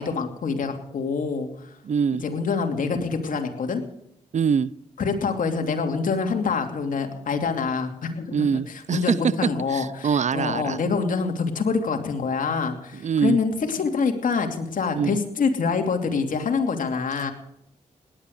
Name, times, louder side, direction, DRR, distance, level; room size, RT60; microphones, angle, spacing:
voice 1, 0.0-1.5 2.2-3.8 5.0-17.3, left 5 dB, 75° left, 4 dB, 2.9 m, -26 dB
voice 2, 1.8-2.2 4.3-4.7 8.3-9.2 9.7-10.8 12.9-13.4 14.9-15.2, right 6 dB, 60° right, 21 dB, 0.7 m, -24 dB
18.0 x 11.5 x 6.7 m, 0.75 s
cardioid pair, 55°, 14 cm